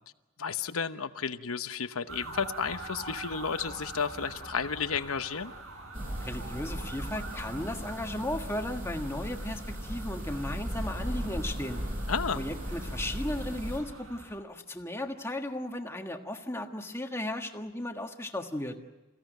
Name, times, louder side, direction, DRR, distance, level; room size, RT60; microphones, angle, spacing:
voice 1, 0.4-5.5 12.1-12.4, left 6 dB, 85° left, 11 dB, 1.0 m, -32 dB
sound 1, 2.1-14.4, right 2 dB, 70° right, 6.6 m, -45 dB
sound 2, 5.9-13.8, equal, 40° right, 7.3 m, -37 dB
voice 2, 6.2-11.8 12.3-18.8, left 1 dB, 10° left, 4 dB, 1.5 m, -35 dB
28.5 x 16.0 x 9.2 m, 1.1 s
head